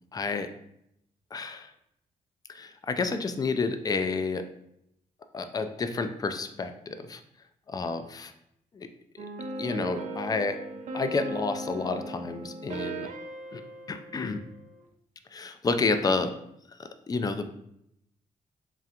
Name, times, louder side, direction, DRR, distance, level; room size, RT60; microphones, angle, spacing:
voice 1, 0.1-0.5 1.3-1.7 2.5-4.5 5.3-7.2 7.7-8.3 8.8-8.9 9.2-10.6 10.9-13.1 13.5-13.6 13.9-14.4 15.3-16.3 16.8-17.5, left 4 dB, 25° left, 9 dB, 0.3 m, -30 dB
sound 1, 9.2-14.8, right 2 dB, 60° right, 0.5 m, -38 dB
3.7 x 3.2 x 2.8 m, 0.76 s
cardioid pair, 110°, 14 cm